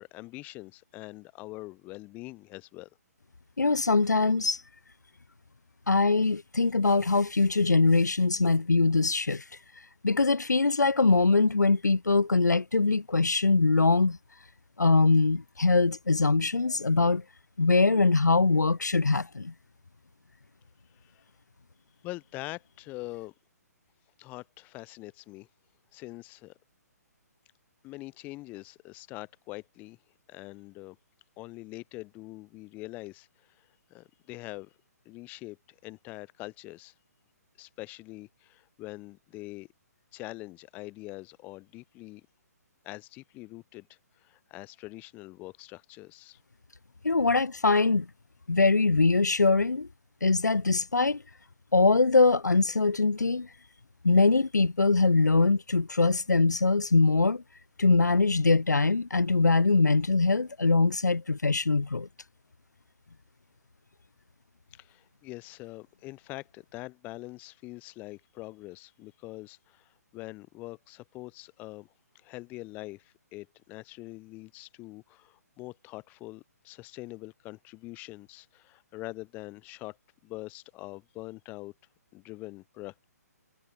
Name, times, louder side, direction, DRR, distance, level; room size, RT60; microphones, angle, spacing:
voice 1, 0.0-2.9 20.9-21.2 22.0-23.3 24.2-25.5 25.9-26.5 27.8-30.0 30.3-31.0 31.4-34.8 35.1-36.9 37.6-39.7 40.1-42.2 42.8-46.4 64.7-71.9 72.1-80.0 80.2-81.7 82.1-83.0, left 20 dB, 20° left, 0.5 m, -44 dB
voice 2, 3.6-4.6 5.9-9.4 10.0-14.2 14.8-17.2 17.6-19.5 47.0-48.1 48.5-49.9 50.2-51.2 51.7-53.5 54.0-57.4 57.8-62.1, left 3 dB, 85° left, 0.5 m, -23 dB
figure-of-eight pair, 130°, 9 cm